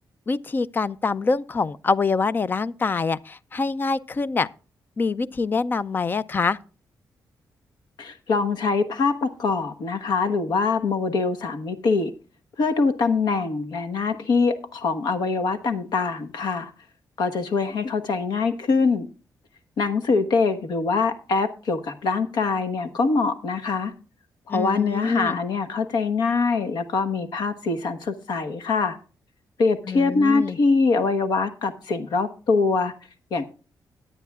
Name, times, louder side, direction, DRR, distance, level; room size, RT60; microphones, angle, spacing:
voice 1, 0.3-4.5 5.0-6.6 24.5-25.4 29.9-30.6, left 4 dB, 30° left, 0.4 m, -25 dB
voice 2, 8.0-12.1 12.6-16.7 17.2-19.1 19.8-23.9 24.5-29.0 29.6-32.9 33.3-33.4, left 4 dB, 85° left, 1.2 m, -23 dB
17.5 x 9.8 x 2.4 m
wide cardioid pair, 155°, 7 cm